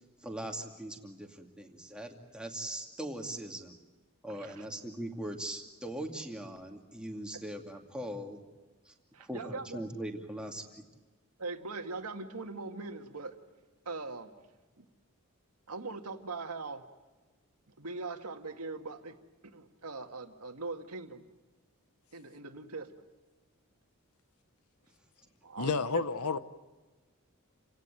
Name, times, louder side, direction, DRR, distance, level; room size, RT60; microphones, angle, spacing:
voice 1, 0.2-3.8 4.2-8.4 8.9-9.0 9.2-10.6, right 1 dB, 5° right, 2.4 m, -40 dB
voice 2, 9.1-9.8 11.4-13.4 13.9-14.3 14.8-14.9 15.7-16.8 17.8-19.2 19.5-21.2 22.1-22.9 25.4-26.0, right 3 dB, 90° right, 2.0 m, -41 dB
voice 3, 25.6-26.4, left 4 dB, 80° left, 0.9 m, -30 dB
29.5 x 17.0 x 9.1 m
head